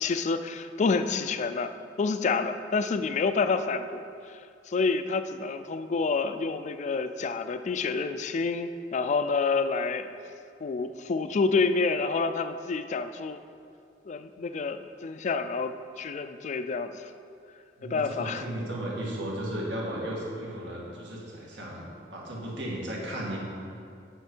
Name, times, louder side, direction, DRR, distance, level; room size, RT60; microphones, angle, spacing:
voice 1, 0.0-1.7 2.0-4.4 4.7-10.1 10.6-13.4 14.1-17.1 17.8-18.4, left 4 dB, 40° left, 10 dB, 0.3 m, -28 dB
voice 2, 17.8-23.4, right 1 dB, 80° right, -3 dB, 1.7 m, -35 dB
8.1 x 5.9 x 4.4 m, 2.4 s
head